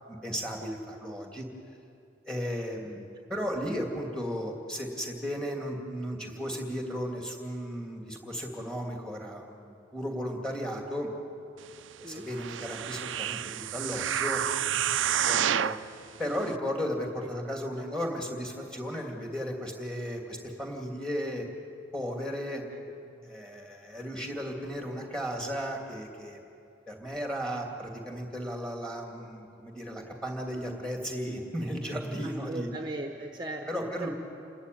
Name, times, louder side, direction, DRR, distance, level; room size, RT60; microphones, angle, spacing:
voice 1, 0.1-1.5 2.3-11.1 12.0-14.4 15.2-15.8 16.2-21.5 21.9-22.6 23.2-26.4 26.9-32.7 33.7-34.1, equal, 5° left, 1 dB, 2.7 m, -35 dB
sound 1, 12.3-15.9 16.5-16.6, right 10 dB, 75° right, 0.5 m, -29 dB
voice 2, 22.7-23.3 32.2-34.1, right 2 dB, 25° right, 3 dB, 1.0 m, -39 dB
28.5 x 14.0 x 9.5 m, 2.6 s
head